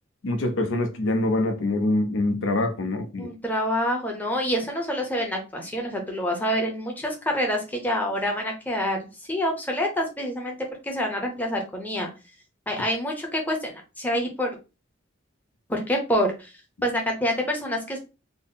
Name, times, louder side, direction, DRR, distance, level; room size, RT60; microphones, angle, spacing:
voice 1, 0.2-3.3, left 2 dB, 75° left, 0.6 m, -25 dB
voice 2, 3.2-9.0 9.3-10.6 10.8-12.1 12.7-14.6 15.7-16.5 16.8-18.0, equal, 10° left, 0.8 m, -27 dB
3.7 x 2.0 x 3.9 m
head